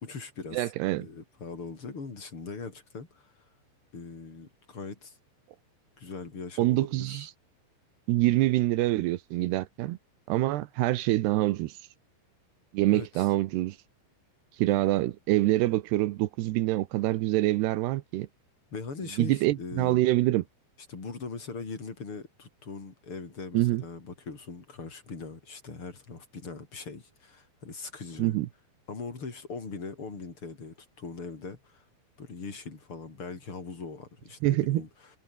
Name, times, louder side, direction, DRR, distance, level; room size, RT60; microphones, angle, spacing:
voice 1, 0.0-0.7 1.0-3.4 3.9-5.2 6.0-7.3 12.9-13.3 18.7-20.0 20.9-28.4 28.9-31.8 32.2-35.1, left 4 dB, 30° left, 5.0 m, -41 dB
voice 2, 0.5-1.1 6.6-7.3 8.1-10.0 10.3-11.7 12.7-13.8 14.6-18.3 19.2-20.4 23.5-23.8 28.2-28.5 34.4-34.8, right 17 dB, 75° right, 2.6 m, -25 dB
omnidirectional pair, 5.6 m